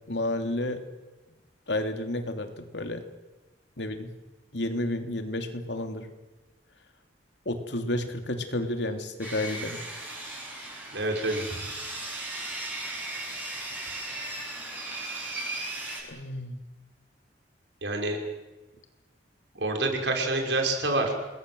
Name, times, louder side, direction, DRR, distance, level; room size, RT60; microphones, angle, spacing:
voice 1, 0.1-0.8 1.7-3.0 3.8-4.1 4.5-6.1 7.4-9.8 16.1-16.6, left 1 dB, 75° left, 6 dB, 3.0 m, -31 dB
Sawing, 9.2-16.0, right 2 dB, 10° right, 7.8 m, -36 dB
voice 2, 10.9-11.5 17.8-18.2 19.5-21.1, right 2 dB, 75° right, 3 dB, 5.8 m, -27 dB
29.0 x 21.5 x 7.9 m, 1.1 s
head